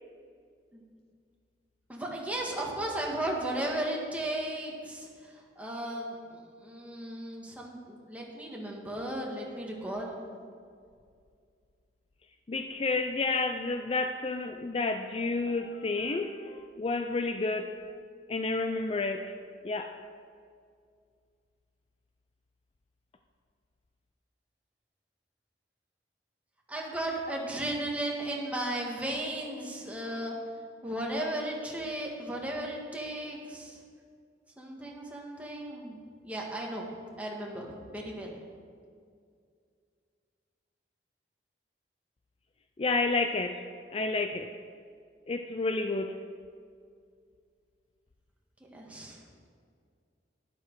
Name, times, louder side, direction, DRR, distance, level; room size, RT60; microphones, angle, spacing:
voice 1, 1.9-10.2 26.7-30.3 30.8-33.8 34.6-36.0 36.2-36.9 37.2-38.4 48.7-49.2, right 1 dB, 10° right, -2 dB, 1.8 m, -35 dB
voice 2, 12.5-17.7 18.3-19.3 19.6-20.0 42.8-43.6 43.9-44.5 45.3-46.2, left 3 dB, 35° left, 7 dB, 0.4 m, -30 dB
12.0 x 11.5 x 4.7 m, 2.2 s
head